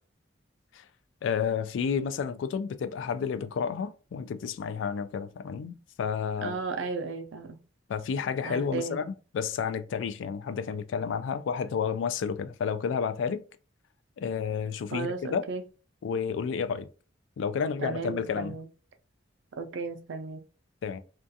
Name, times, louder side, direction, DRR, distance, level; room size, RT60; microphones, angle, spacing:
voice 1, 1.2-6.6 7.9-13.4 14.2-15.4 16.0-16.9 17.4-18.6 20.8-21.0, left 6 dB, 85° left, 0.3 m, -31 dB
voice 2, 6.4-7.6 8.4-9.1 14.9-15.6 17.8-18.7 19.6-20.4, right 4 dB, 80° right, 0.4 m, -34 dB
2.4 x 2.3 x 2.6 m
head